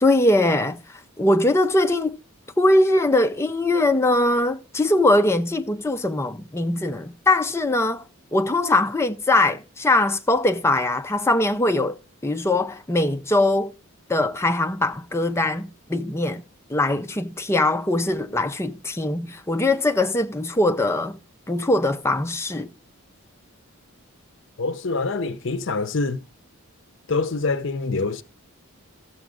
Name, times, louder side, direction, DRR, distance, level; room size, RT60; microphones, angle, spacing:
voice 1, 0.0-0.8 1.2-2.2 2.6-8.0 8.3-13.7 14.1-16.4 16.7-21.2 21.5-22.7, left 2 dB, 10° left, 0.5 m, -21 dB
voice 2, 24.6-26.2 27.1-28.2, left 3 dB, 55° left, 0.7 m, -25 dB
13.5 x 7.0 x 3.8 m
head